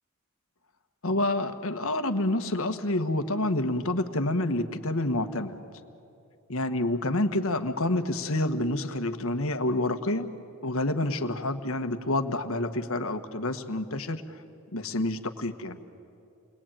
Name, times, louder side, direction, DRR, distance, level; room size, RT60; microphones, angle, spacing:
voice 1, 1.0-5.6 6.5-10.3 10.6-14.2 14.7-15.8, left 1 dB, 65° left, 8 dB, 1.4 m, -28 dB
29.5 x 22.0 x 9.0 m, 2.6 s
head